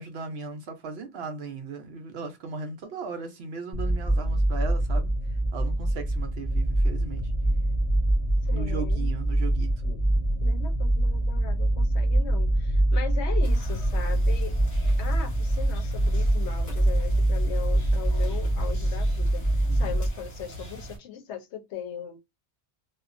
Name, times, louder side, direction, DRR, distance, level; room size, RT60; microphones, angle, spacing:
voice 1, 0.0-7.3 8.5-9.7 19.7-19.9, right 4 dB, 65° right, 0.8 m, -37 dB
sound 1, 3.7-20.1, right 1 dB, 10° left, 0.8 m, -24 dB
voice 2, 8.4-9.1 9.8-10.0 10.4-14.5 15.0-22.2, left 8 dB, 80° left, 0.9 m, -39 dB
sound 2, 13.4-21.0, right 2 dB, 65° left, 1.5 m, -41 dB
2.8 x 2.3 x 2.5 m
omnidirectional pair, 1.1 m